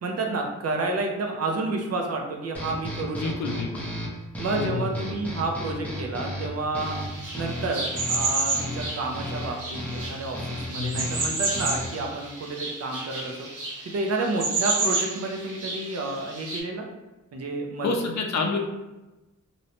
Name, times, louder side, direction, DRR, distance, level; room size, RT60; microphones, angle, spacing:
voice 1, 0.0-3.2 3.5-3.6 4.4-7.0 7.3-13.5 13.9-16.8 17.3-17.9, right 3 dB, 55° right, 2 dB, 0.5 m, -30 dB
sound 1, 2.5-12.1, left 1 dB, 5° left, 0.5 m, -35 dB
voice 2, 3.2-3.9 4.5-5.0 10.8-11.1 17.8-18.6, left 4 dB, 60° left, 3 dB, 0.5 m, -28 dB
sound 2, 6.8-16.6, right 3 dB, 80° right, 0.8 m, -31 dB
2.6 x 2.1 x 2.8 m, 1.0 s
wide cardioid pair, 145°, 31 cm